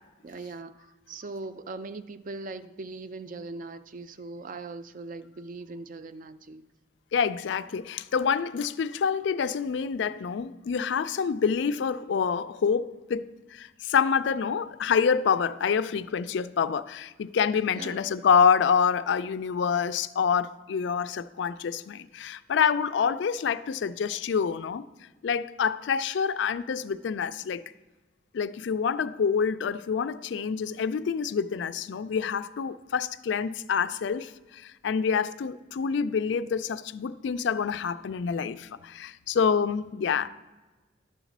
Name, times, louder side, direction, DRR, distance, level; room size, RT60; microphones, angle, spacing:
voice 1, 0.2-6.7 17.8-18.1, right 3 dB, 45° right, 12 dB, 0.4 m, -40 dB
voice 2, 7.1-24.9 25.2-27.6 28.3-40.3, left 6 dB, 65° left, 14 dB, 0.3 m, -27 dB
11.0 x 4.0 x 7.2 m, 1.2 s
head